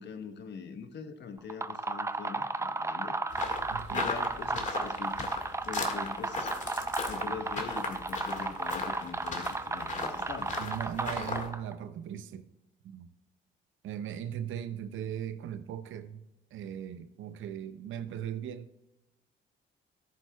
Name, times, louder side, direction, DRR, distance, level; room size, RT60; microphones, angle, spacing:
voice 1, 0.0-3.2 3.9-5.4 5.7-6.5 7.0-10.6, left 6 dB, 60° left, 1.2 m, -43 dB
sound 1, 1.4-11.7, right 3 dB, 15° right, 0.5 m, -34 dB
sound 2, 3.3-11.5, left 4 dB, 40° left, 1.8 m, -38 dB
voice 2, 3.7-4.1 10.6-12.5 12.8-13.1 13.8-16.2 16.5-18.7, right 9 dB, 75° right, 0.7 m, -38 dB
13.5 x 11.0 x 2.3 m
cardioid pair, 90°, 20 cm